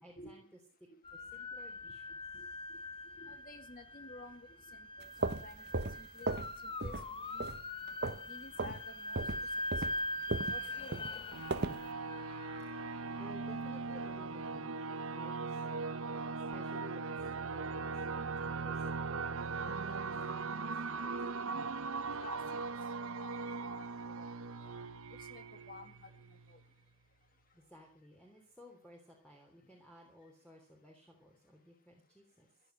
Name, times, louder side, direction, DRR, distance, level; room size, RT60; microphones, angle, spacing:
voice 1, 0.0-2.5 13.2-15.8 16.5-17.1 17.5-21.5 27.5-32.5, equal, 5° left, 0 dB, 3.4 m, -57 dB
sound 1, 1.0-14.1, left 1 dB, 25° left, 1.1 m, -43 dB
voice 2, 3.2-6.3 6.6-7.5 8.3-9.3 9.7-10.1 10.5-11.6 22.2-22.7 23.0-24.7 25.2-26.6, left 3 dB, 40° left, 9 dB, 2.1 m, -53 dB
sound 2, 5.0-6.5 6.8-7.1 7.4-8.3 8.6-8.8 9.1-11.8, right 2 dB, 50° right, 1.0 m, -36 dB
sound 3, 11.3-26.6, right 4 dB, 70° right, 0.8 m, -39 dB
15.0 x 12.0 x 7.9 m, 0.43 s
head